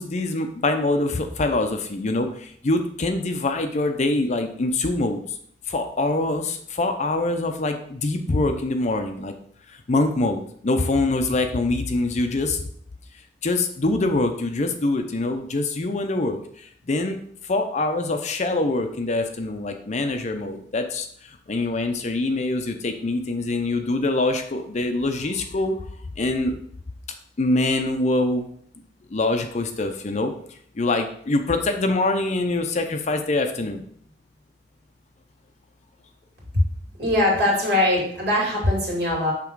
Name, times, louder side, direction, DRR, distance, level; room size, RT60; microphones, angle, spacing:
voice 1, 0.0-5.2 5.7-9.3 9.9-12.6 13.4-17.2 17.5-25.8 26.2-26.5 27.4-28.5 29.1-30.3 30.7-33.8, left 2 dB, 40° left, 6 dB, 0.6 m, -24 dB
voice 2, 37.0-39.3, left 1 dB, 70° right, -4 dB, 2.5 m, -21 dB
6.0 x 3.4 x 4.6 m, 0.62 s
head